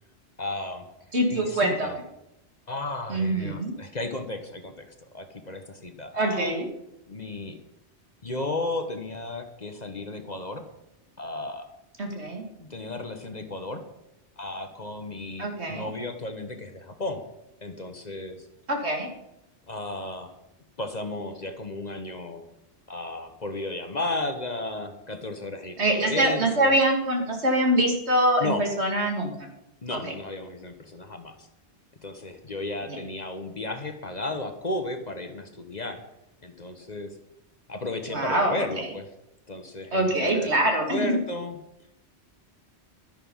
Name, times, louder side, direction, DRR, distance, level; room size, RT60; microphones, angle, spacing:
voice 1, 0.4-0.8 1.3-2.0 2.7-4.9 5.1-6.5 7.1-7.6 8.2-10.6 11.2-11.7 12.6-13.8 14.4-17.2 17.6-18.5 19.7-20.3 20.8-22.4 22.9-26.7 28.4-28.6 29.8-31.5 32.0-36.0 36.4-37.1 37.7-39.1 39.5-41.6, left 2 dB, 40° left, 7 dB, 1.2 m, -34 dB
voice 2, 1.1-2.0 3.1-3.7 6.1-6.7 12.0-12.4 15.4-15.9 18.7-19.1 25.8-29.5 29.9-30.0 32.9-33.0 38.1-38.9 39.9-41.2, right 1 dB, 70° right, 2 dB, 2.7 m, -24 dB
12.0 x 11.0 x 5.5 m, 0.86 s
omnidirectional pair, 1.2 m